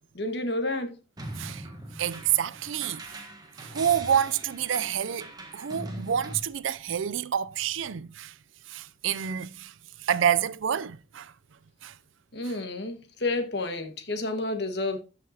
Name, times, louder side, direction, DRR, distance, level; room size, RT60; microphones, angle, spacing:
voice 1, 0.1-0.9 12.3-15.0, left 2 dB, 60° left, 1.5 m, -30 dB
sound 1, 1.2-6.4, right 1 dB, 20° right, 1.4 m, -41 dB
voice 2, 1.4-1.7 2.0-3.2 3.6-8.3 8.7-9.7 10.0-11.3 11.8-11.9, right 9 dB, 85° right, 0.5 m, -28 dB
14.0 x 5.9 x 2.8 m
head